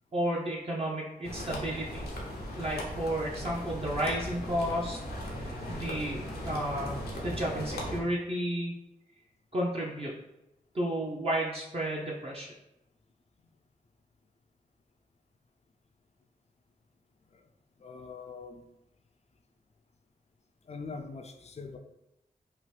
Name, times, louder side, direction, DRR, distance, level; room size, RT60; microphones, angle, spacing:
voice 1, 0.1-2.0 2.6-5.0 5.3-7.0 7.2-8.7 9.5-10.2 10.7-12.5, right 1 dB, 40° right, -4 dB, 0.6 m, -32 dB
sound 1, 1.2-8.0, equal, 85° left, 0.6 m, -38 dB
voice 2, 17.8-18.6 20.6-21.8, left 4 dB, 45° left, 6 dB, 0.4 m, -43 dB
2.9 x 2.1 x 3.2 m, 0.88 s
cardioid pair, 45°, 16 cm